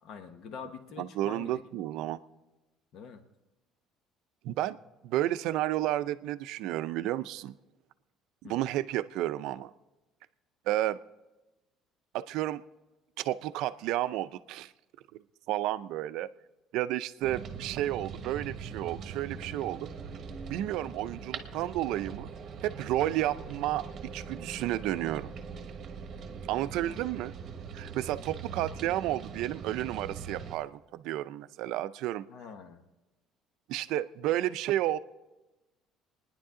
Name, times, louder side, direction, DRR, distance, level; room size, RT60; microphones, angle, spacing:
voice 1, 0.0-1.9 2.9-3.2 8.4-8.6 26.8-27.1 32.3-32.8, left 6 dB, 50° left, 8 dB, 1.1 m, -45 dB
voice 2, 1.0-2.2 4.4-4.8 5.0-7.5 8.5-9.7 10.7-11.0 12.1-12.6 13.2-14.7 15.5-16.3 16.7-19.9 20.5-22.3 22.6-23.9 24.1-25.3 26.5-27.3 27.7-32.3 33.7-35.0, right 14 dB, 70° right, 13 dB, 0.5 m, -31 dB
sound 1, 17.2-30.5, right 5 dB, 35° right, 1.2 m, -42 dB
27.0 x 10.5 x 3.7 m, 1.1 s
cardioid pair, 165°, 0 cm